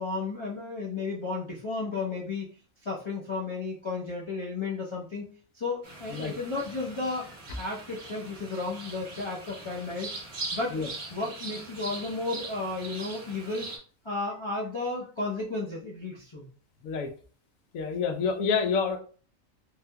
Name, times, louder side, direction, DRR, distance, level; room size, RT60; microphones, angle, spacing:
voice 1, 0.0-2.5 2.8-5.3 5.5-7.3 7.5-10.1 10.5-10.8 11.1-13.7 14.0-16.5, left 3 dB, 40° left, -4 dB, 0.4 m, -33 dB
sound 1, 5.8-13.8, right 3 dB, 40° right, 0.8 m, -41 dB
voice 2, 17.7-19.0, left 5 dB, 80° left, 5 dB, 1.1 m, -27 dB
3.5 x 2.7 x 2.2 m, 0.41 s
omnidirectional pair, 1.4 m